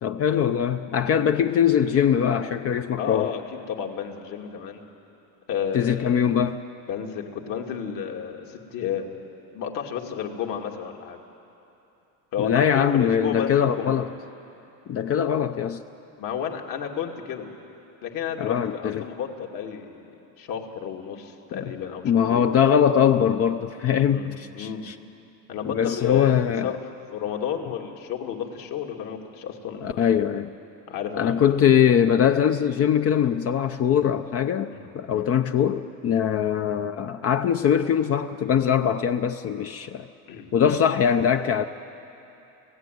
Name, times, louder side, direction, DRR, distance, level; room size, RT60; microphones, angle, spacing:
voice 1, 0.0-3.3 5.7-6.6 12.4-14.1 14.9-15.8 18.4-19.1 21.5-21.7 22.0-25.0 25.6-26.7 29.8-30.5 31.1-40.1 40.5-41.6, left 8 dB, 40° left, 8 dB, 0.7 m, -22 dB
voice 2, 3.0-3.4 3.7-4.8 5.5-6.3 6.9-9.1 9.5-11.2 12.3-13.9 16.2-17.5 18.0-20.1 20.4-22.5 24.1-24.3 24.5-24.9 25.5-26.8 27.1-30.2 30.9-31.4 34.7-35.3 40.3-40.8, left 8 dB, 65° left, 1 dB, 2.8 m, -32 dB
30.0 x 16.5 x 9.5 m, 2.9 s
cardioid pair, 140°, 36 cm